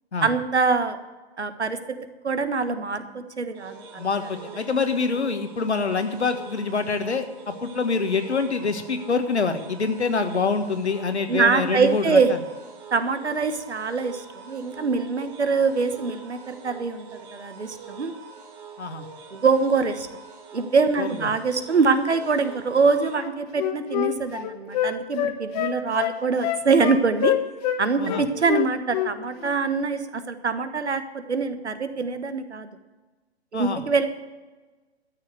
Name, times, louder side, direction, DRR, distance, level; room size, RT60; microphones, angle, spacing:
voice 1, 0.2-1.0 1.4-1.8 2.2-4.0 11.3-12.3 12.9-18.1 19.3-20.1 20.5-27.3 27.8-32.7 33.5-34.1, right 4 dB, 85° right, 10 dB, 1.4 m, -24 dB
sound 1, 3.5-23.2, right 5 dB, 35° right, 2.6 m, -44 dB
voice 2, 4.0-12.4 18.8-19.1 21.0-21.3 28.0-28.3 33.5-33.8, left 4 dB, 80° left, 7 dB, 1.6 m, -26 dB
Wind instrument woodwind instrument, 23.1-27.8 28.1-29.1 29.4-29.6, left 13 dB, 35° left, 1.2 m, -26 dB
13.0 x 7.0 x 7.8 m, 1.2 s
figure-of-eight pair, 125°, 33 cm